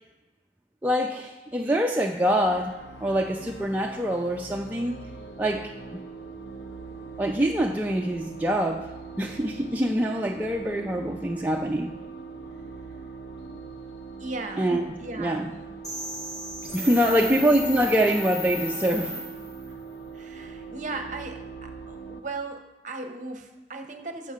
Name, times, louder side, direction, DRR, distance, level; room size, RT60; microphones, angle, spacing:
voice 1, 0.8-5.0 5.4-5.7 7.2-8.9 9.2-11.9 14.6-15.5 16.7-19.1, equal, 10° right, 0 dB, 0.3 m, -25 dB
sound 1, 2.4-22.2, right 4 dB, 65° left, 0.7 m, -41 dB
voice 2, 14.2-14.7 15.0-15.5 16.9-17.3 19.7-19.8 20.1-24.3, right 3 dB, 45° right, 5 dB, 0.7 m, -37 dB
sound 2, 15.8-19.7, left 1 dB, 20° left, 1.0 m, -35 dB
7.1 x 5.4 x 4.9 m, 1.2 s
head